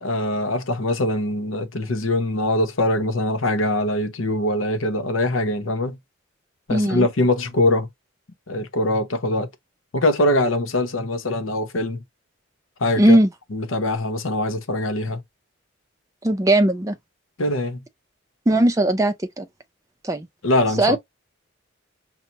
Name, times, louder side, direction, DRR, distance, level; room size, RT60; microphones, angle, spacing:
voice 1, 0.0-6.0 6.7-7.9 8.5-9.5 9.9-12.0 12.8-13.2 13.5-15.2 17.4-17.8 20.4-21.0, left 1 dB, 80° left, 0.8 m, -22 dB
voice 2, 6.7-7.1 13.0-13.3 16.2-16.9 18.5-19.5 20.0-20.3 20.8-21.0, right 1 dB, 15° right, 0.4 m, -18 dB
5.6 x 2.1 x 2.8 m
head